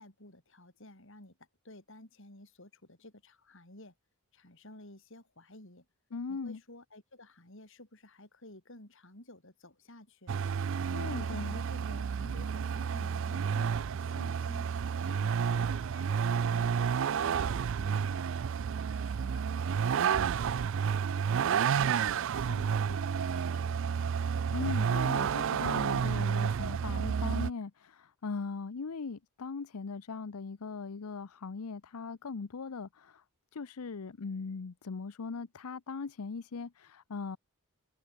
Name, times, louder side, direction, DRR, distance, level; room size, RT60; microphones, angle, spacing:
voice 1, 0.0-1.4 1.6-3.9 4.3-5.9 6.3-10.4 11.1-14.7 15.0-18.3 18.7-20.9 21.3-24.1, left 1 dB, 60° left, 5.4 m, -53 dB
voice 2, 6.1-6.6 10.9-11.6 24.5-33.2 33.5-37.4, left 4 dB, 80° left, 0.6 m, -39 dB
Vehicle, 10.3-27.5, right 7 dB, 60° right, 0.4 m, -30 dB
head